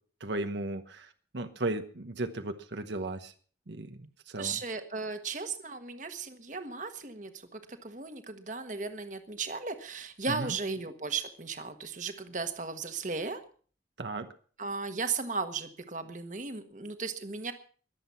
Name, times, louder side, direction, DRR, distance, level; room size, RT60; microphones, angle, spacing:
voice 1, 0.2-3.3 3.7-4.6 10.3-10.5 14.0-14.3, right 2 dB, 75° right, 7 dB, 1.1 m, -36 dB
voice 2, 4.4-13.4 14.6-17.5, right 4 dB, 45° right, 8 dB, 1.4 m, -36 dB
22.0 x 8.0 x 5.7 m, 0.43 s
head